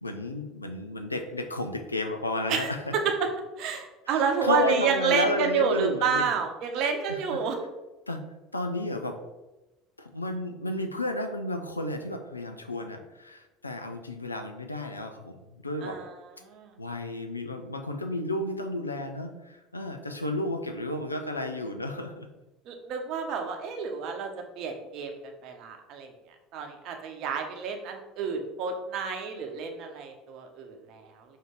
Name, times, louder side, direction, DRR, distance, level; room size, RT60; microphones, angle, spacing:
voice 1, 0.0-2.9 4.1-6.3 7.1-7.2 8.1-8.2 8.5-9.2 10.0-16.0 16.8-22.3, left 2 dB, 85° left, 6 dB, 0.4 m, -32 dB
voice 2, 3.6-7.6 15.8-16.1 16.5-16.7 22.7-24.3 24.6-25.1 25.4-26.1 26.5-31.2, right 6 dB, 50° right, 4 dB, 0.7 m, -29 dB
5.4 x 2.7 x 3.6 m, 1.0 s
figure-of-eight pair, 70°, 0 cm